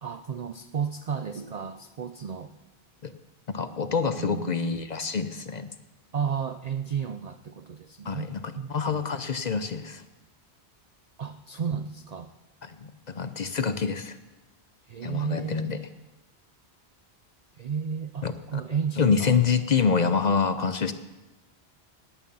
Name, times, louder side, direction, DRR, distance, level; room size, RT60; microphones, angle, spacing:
voice 1, 0.0-2.5 4.2-4.7 6.1-8.7 11.2-12.3 14.9-15.7 17.6-19.3, right 7 dB, 50° right, 9 dB, 0.5 m, -33 dB
voice 2, 3.5-5.7 8.1-10.0 12.6-14.2 15.0-15.8 18.2-18.6 19.0-20.9, left 5 dB, 50° left, 11 dB, 0.7 m, -26 dB
18.0 x 9.0 x 5.4 m, 1.1 s
omnidirectional pair, 1.1 m